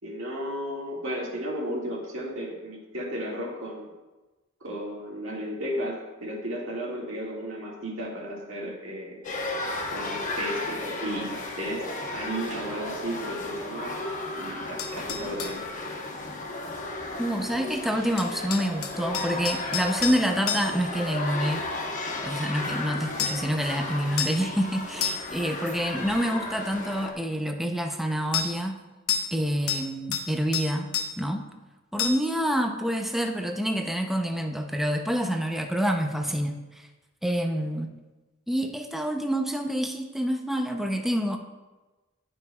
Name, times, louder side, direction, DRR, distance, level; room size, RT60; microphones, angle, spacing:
voice 1, 0.0-3.9 4.6-9.2 9.9-14.0 14.3-15.6, equal, 70° right, -3 dB, 2.0 m, -34 dB
sound 1, 9.2-27.1, left 2 dB, 40° left, 1.0 m, -34 dB
sound 2, 14.8-15.6 18.2-20.9 23.2-23.5 24.2-24.5 25.0-25.4 28.3-28.5 29.1-29.4 29.7-30.3 30.5-31.1 32.0-32.3, left 7 dB, 85° left, 0.8 m, -30 dB
voice 2, 17.2-21.7 22.2-28.8 29.3-30.9 31.2-31.5 31.9-36.9 37.2-37.9 38.5-41.4, equal, ahead, 4 dB, 0.5 m, -27 dB
11.5 x 5.4 x 2.3 m, 1.2 s
head